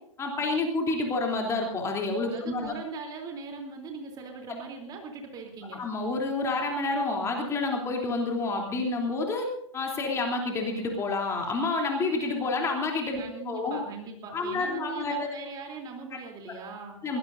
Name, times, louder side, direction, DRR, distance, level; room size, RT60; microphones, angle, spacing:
voice 1, 0.2-2.7 5.7-13.8 14.3-15.3 17.0-17.2, left 3 dB, 15° left, 1 dB, 3.3 m, -29 dB
voice 2, 2.3-5.8 13.2-17.0, right 4 dB, 20° right, 3 dB, 3.4 m, -40 dB
22.5 x 19.0 x 2.7 m, 0.68 s
figure-of-eight pair, 120°, 17 cm